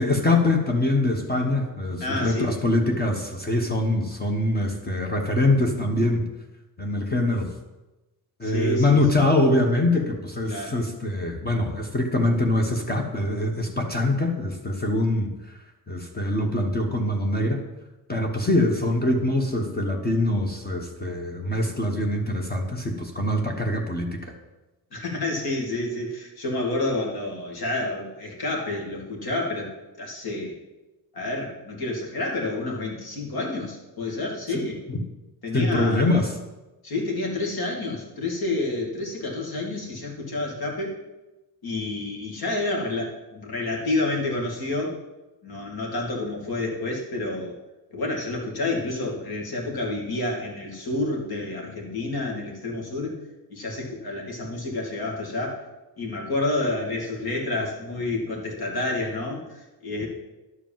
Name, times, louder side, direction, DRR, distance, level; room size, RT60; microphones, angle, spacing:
voice 1, 0.0-6.2 6.8-7.5 8.4-15.3 15.9-17.6 18.1-24.3 35.5-36.3, left 2 dB, 25° left, 2 dB, 1.1 m, -23 dB
voice 2, 2.0-2.5 8.4-9.3 10.5-10.8 24.9-30.6 31.1-34.8 35.4-36.2 36.8-40.9 41.6-45.0 45.4-47.5 47.9-53.1 53.5-55.6 56.0-60.1, left 2 dB, 65° left, -1 dB, 2.7 m, -29 dB
11.5 x 5.1 x 7.4 m, 1.1 s
cardioid pair, 125°, 40 cm